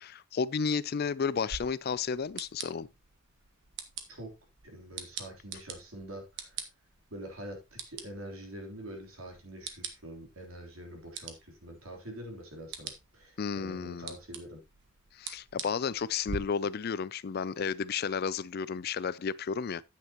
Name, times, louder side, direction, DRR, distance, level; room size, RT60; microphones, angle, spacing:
voice 1, 0.0-2.9 13.4-14.1 15.1-19.8, left 6 dB, 50° left, 0.4 m, -32 dB
sound 1, 1.5-16.4, right 6 dB, 60° right, 1.3 m, -46 dB
voice 2, 4.6-6.7 7.1-14.6, right 1 dB, 80° right, 3.4 m, -45 dB
9.7 x 8.5 x 2.9 m
head